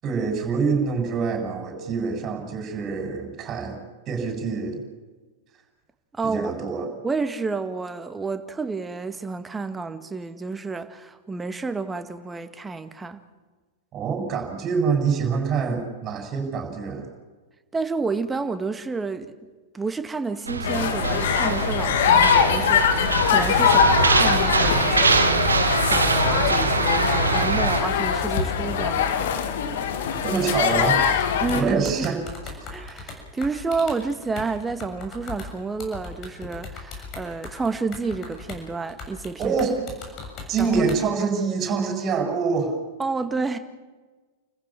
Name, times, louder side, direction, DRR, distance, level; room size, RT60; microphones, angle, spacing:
voice 1, 0.0-3.8 4.1-4.8 6.2-6.9 13.9-17.1 30.2-31.3 31.5-32.2 39.4-39.7 40.5-42.8, right 5 dB, 30° right, 4 dB, 7.4 m, -25 dB
voice 2, 6.1-6.5 7.0-13.2 17.7-19.3 19.7-29.4 31.4-32.1 32.7-39.5 40.6-40.8 43.0-43.6, right 4 dB, 10° right, 9 dB, 1.9 m, -30 dB
sound 1, 20.5-27.8, right 4 dB, 80° right, 1.9 m, -23 dB
sound 2, 20.6-31.6, left 7 dB, 60° left, 2.5 m, -22 dB
sound 3, 31.5-38.6 38.9-41.0, left 4 dB, 35° left, 7.2 m, -38 dB
30.0 x 15.0 x 7.6 m, 1.3 s
figure-of-eight pair, 100°, 0 cm